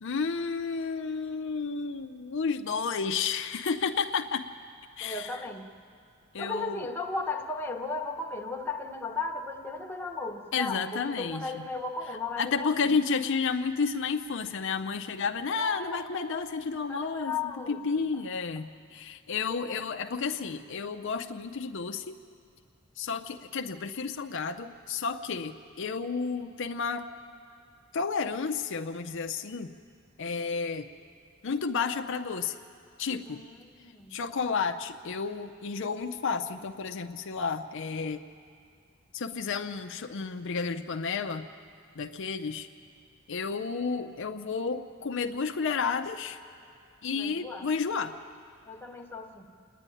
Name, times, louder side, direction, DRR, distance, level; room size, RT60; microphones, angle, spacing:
voice 1, 0.0-4.5 5.0-5.3 6.3-6.9 10.5-11.7 12.4-22.2 23.0-27.1 27.9-29.8 30.2-30.9 31.4-32.6 33.0-33.4 34.1-38.3 39.1-41.5 42.0-42.7 43.3-46.4 47.0-48.2, left 5 dB, 65° left, 7 dB, 0.6 m, -31 dB
voice 2, 5.0-5.7 6.4-13.0 15.5-16.0 16.9-17.8 19.4-19.8 33.2-34.2 47.1-47.7 48.7-49.5, left 3 dB, 10° left, 1 dB, 1.1 m, -36 dB
27.5 x 10.0 x 9.9 m, 2.5 s
head